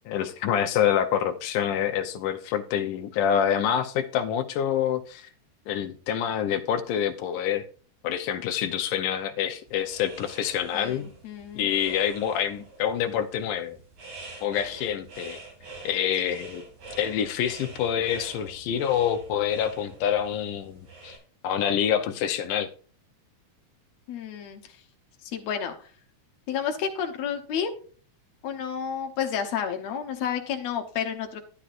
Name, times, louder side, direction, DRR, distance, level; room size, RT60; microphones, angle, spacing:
voice 1, 0.1-5.3 5.7-7.6 8.0-11.1 11.6-13.8 14.4-15.4 15.8-16.6 16.9-21.2 21.4-22.7, left 9 dB, 90° left, 2.4 m, -26 dB
sound 1, 9.7-21.2, right 3 dB, 70° right, 4.1 m, -46 dB
voice 2, 10.7-11.7 24.1-24.7 25.2-25.9 26.5-27.7 28.4-31.4, left 8 dB, 65° left, 2.2 m, -31 dB
12.0 x 9.9 x 2.5 m
omnidirectional pair, 3.6 m